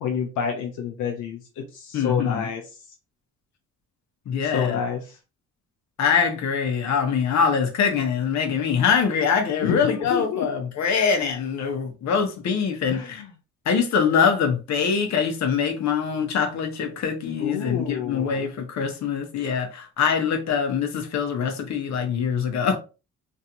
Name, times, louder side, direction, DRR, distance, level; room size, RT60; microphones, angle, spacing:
voice 1, 0.0-2.6 4.4-5.2 9.6-10.5 12.9-13.3 17.4-18.4, left 7 dB, 85° left, 0.7 m, -29 dB
voice 2, 1.9-2.4 4.3-4.8 6.0-13.2 13.7-22.8, left 6 dB, 65° left, 1.0 m, -23 dB
3.2 x 2.7 x 2.8 m
cardioid pair, 90°, 30 cm